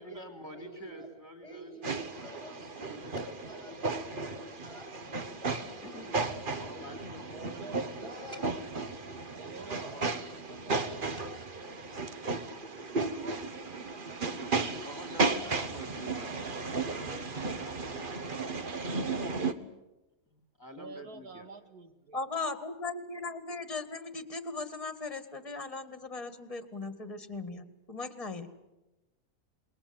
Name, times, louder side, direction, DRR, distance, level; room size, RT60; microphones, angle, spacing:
voice 1, 0.0-3.1 3.4-3.7 4.2-4.7 5.8-6.1 6.6-7.8 9.5-11.2 12.4-13.3 14.4-18.5 20.6-21.5, equal, ahead, 5 dB, 3.1 m, -50 dB
voice 2, 0.5-1.1 1.4-7.0 7.4-7.5 7.9-10.0 10.5-13.0 15.2-16.4, equal, 15° right, 4 dB, 5.2 m, -50 dB
sound 1, 1.8-19.5, right 3 dB, 35° right, 1.3 m, -35 dB
voice 3, 7.3-8.0 9.3-10.0 10.4-10.9 13.2-15.8 16.2-16.4 20.7-22.2, right 4 dB, 70° right, 8 dB, 2.7 m, -49 dB
voice 4, 22.1-28.5, left 3 dB, 20° left, 10 dB, 2.0 m, -38 dB
28.5 x 21.5 x 8.0 m, 1.0 s
omnidirectional pair, 1.7 m